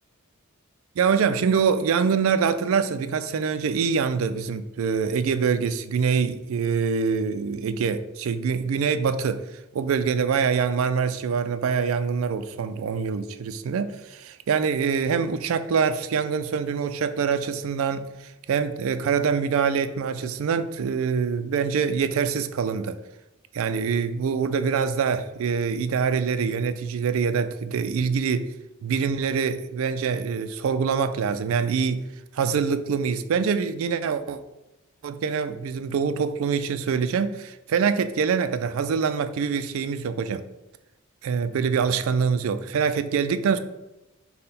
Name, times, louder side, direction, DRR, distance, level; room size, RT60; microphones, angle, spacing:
voice 1, 1.0-9.4 9.7-18.1 18.5-23.0 23.5-28.5 28.8-32.0 32.3-34.4 35.0-40.4 41.2-43.6, right 6 dB, 70° right, 0.3 m, -25 dB
5.5 x 2.2 x 4.1 m
head